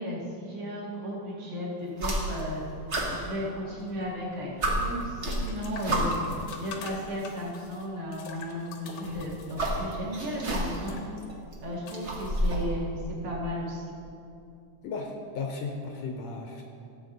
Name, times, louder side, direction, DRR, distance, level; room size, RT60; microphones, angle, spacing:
voice 1, 0.0-2.6 3.1-6.2 6.6-11.0 11.6-12.9 13.2-13.8, equal, 45° right, -5 dB, 2.8 m, -35 dB
sound 1, 1.9-2.6 2.9-4.0 4.3-4.4 4.6-6.4 7.4-7.5 8.9-10.9 11.3-12.7, right 1 dB, 60° right, 0.7 m, -30 dB
sound 2, 4.1-13.0, left 6 dB, 85° left, 2.5 m, -47 dB
voice 2, 14.8-16.6, left 4 dB, 70° left, 2 dB, 1.7 m, -35 dB
15.0 x 7.6 x 3.9 m, 2.5 s
omnidirectional pair, 3.7 m